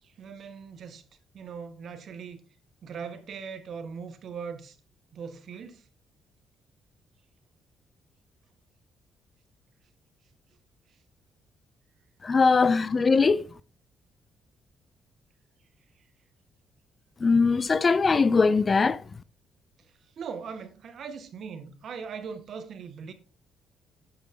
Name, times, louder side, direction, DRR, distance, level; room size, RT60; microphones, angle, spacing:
voice 1, 0.2-1.0 1.3-2.4 2.8-4.8 5.1-5.8 20.2-23.1, right 6 dB, 60° right, 1.9 m, -40 dB
voice 2, 12.2-13.4 17.2-19.0, left 4 dB, 35° left, 0.6 m, -21 dB
10.5 x 8.9 x 3.9 m
cardioid pair, 90°, 0 cm